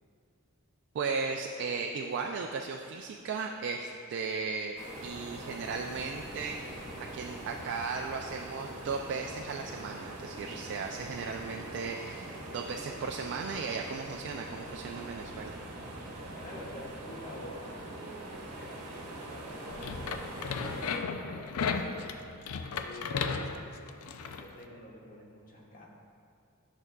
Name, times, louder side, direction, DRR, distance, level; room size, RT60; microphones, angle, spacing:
voice 1, 0.9-4.8 5.0-15.5, right 4 dB, 55° right, 2 dB, 0.3 m, -36 dB
sound 1, 4.8-21.0, right 1 dB, 70° right, 1.1 m, -43 dB
voice 2, 16.3-22.4 22.8-25.9, equal, 40° left, -3 dB, 1.1 m, -48 dB
sound 2, 19.7-24.5, left 5 dB, 70° left, 0.4 m, -35 dB
10.5 x 6.0 x 2.2 m, 2.4 s
head